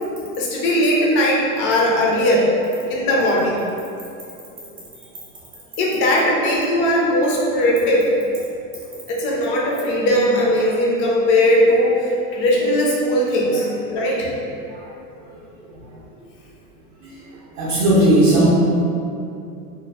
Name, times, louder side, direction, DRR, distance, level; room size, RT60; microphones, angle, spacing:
voice 1, 0.4-2.5 2.9-3.6 5.8-8.1 9.1-14.3, left 1 dB, 30° left, -2 dB, 0.4 m, -18 dB
voice 2, 13.8-14.3 14.7-16.2 17.0-18.5, right 1 dB, 45° right, -6 dB, 0.5 m, -22 dB
2.1 x 2.0 x 3.4 m, 2.5 s
hypercardioid pair, 115°, 45 cm